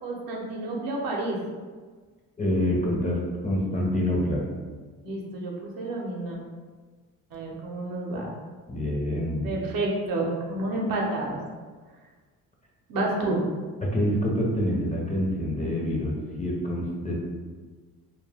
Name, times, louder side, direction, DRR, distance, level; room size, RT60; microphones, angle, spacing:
voice 1, 0.0-1.4 5.0-6.4 7.3-8.3 9.4-11.4 12.9-13.4, right 2 dB, 60° right, -2 dB, 0.8 m, -29 dB
voice 2, 2.4-3.2 3.4-4.4 8.7-9.5 13.8-17.2, equal, 20° left, -3 dB, 0.6 m, -26 dB
2.3 x 2.1 x 3.4 m, 1.4 s
supercardioid pair, 80°, 38 cm